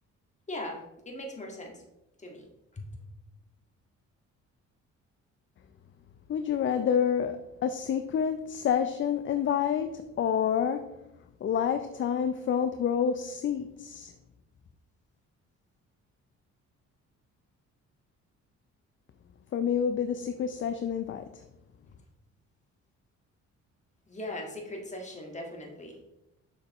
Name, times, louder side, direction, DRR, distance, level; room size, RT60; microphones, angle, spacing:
voice 1, 0.5-1.8 2.2-2.5 2.7-2.8 24.1-26.0, left 1 dB, 25° left, 1 dB, 1.7 m, -39 dB
voice 2, 6.3-10.9 11.4-14.1 19.5-21.4, left 8 dB, 40° left, 8 dB, 0.5 m, -28 dB
6.5 x 6.4 x 3.0 m, 0.92 s
cardioid pair, 90°, 30 cm